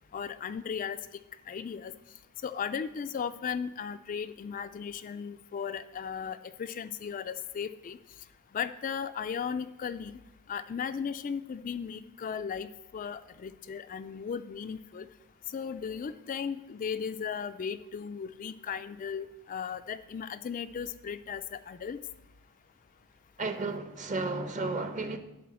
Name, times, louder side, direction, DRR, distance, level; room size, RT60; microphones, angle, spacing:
voice 1, 0.1-1.0 1.5-1.9 2.4-8.0 8.5-10.1 10.5-15.1 15.5-22.0, left 7 dB, 35° left, 11 dB, 0.3 m, -36 dB
voice 2, 23.4-25.2, right 3 dB, 35° right, 8 dB, 0.8 m, -33 dB
11.0 x 3.8 x 7.5 m, 0.94 s
head